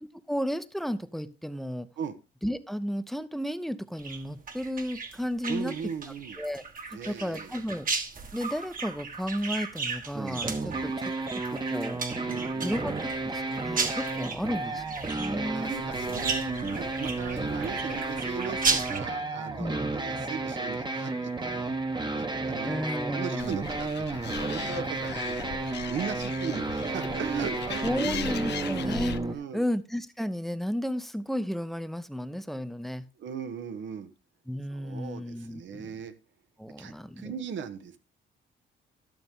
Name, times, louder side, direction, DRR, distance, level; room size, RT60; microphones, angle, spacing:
voice 1, 0.3-1.9 2.4-5.7 6.4-6.6 6.9-7.9 8.3-12.0 12.6-15.7 17.0-17.1 17.4-17.5 19.6-19.9 22.6-23.5 27.8-29.2 29.5-33.1 34.5-35.9 36.6-37.3, equal, ahead, 13 dB, 0.7 m, -33 dB
sound 1, 4.0-19.0, right 4 dB, 45° right, 1.5 m, -35 dB
voice 2, 5.5-6.4 6.9-7.5 10.5-10.9 12.3-12.7 14.1-14.8 15.5-21.7 22.1-22.7 23.1-25.6 25.9-28.2 29.3-29.6 33.2-34.1 34.7-36.1 36.8-38.0, right 7 dB, 70° right, 12 dB, 1.1 m, -38 dB
sound 2, 10.1-29.3, right 3 dB, 20° right, 1.1 m, -32 dB
Animal, 23.4-29.2, left 9 dB, 60° left, 0.7 m, -39 dB
12.5 x 6.7 x 3.6 m, 0.31 s
cardioid pair, 90°, 20 cm